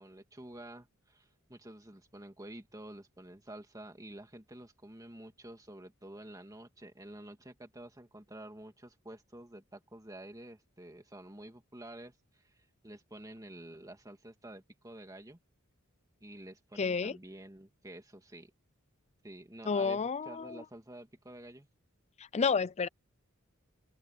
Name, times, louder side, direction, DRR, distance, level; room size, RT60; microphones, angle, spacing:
voice 1, 0.0-12.6 12.8-15.4 16.2-18.5 19.2-21.7, right 1 dB, 15° right, 2.2 m, -49 dB
voice 2, 16.8-17.1 19.7-20.6 22.3-22.9, left 5 dB, 30° left, 0.5 m, -30 dB
open air
head